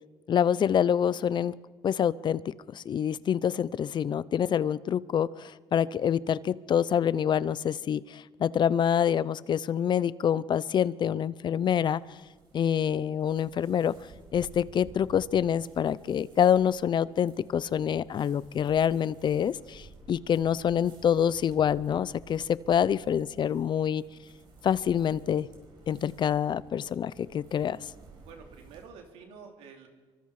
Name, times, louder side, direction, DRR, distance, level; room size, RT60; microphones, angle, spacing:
voice 1, 0.3-1.5 1.8-12.0 12.5-13.9 14.3-24.0 24.6-25.5 25.9-27.8, left 9 dB, 50° left, 19 dB, 0.6 m, -26 dB
sound 1, 11.2-28.9, right 3 dB, 50° right, 5.2 m, -54 dB
voice 2, 28.2-29.9, right 6 dB, 90° right, 3 dB, 3.0 m, -49 dB
25.0 x 24.5 x 4.9 m, 1.3 s
cardioid pair, 100°, 10 cm